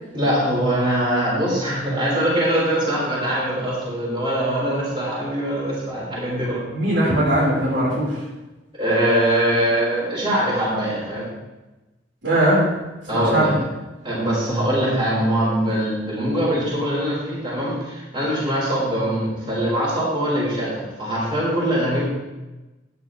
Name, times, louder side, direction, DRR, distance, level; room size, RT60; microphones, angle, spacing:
voice 1, 0.1-6.6 8.7-11.3 13.1-13.5 14.0-22.0, right 1 dB, 25° right, -7 dB, 4.6 m, -22 dB
voice 2, 6.7-8.1 12.2-12.6 13.1-13.6, right 1 dB, 75° right, -6 dB, 4.4 m, -19 dB
14.0 x 10.0 x 3.3 m, 1.1 s
head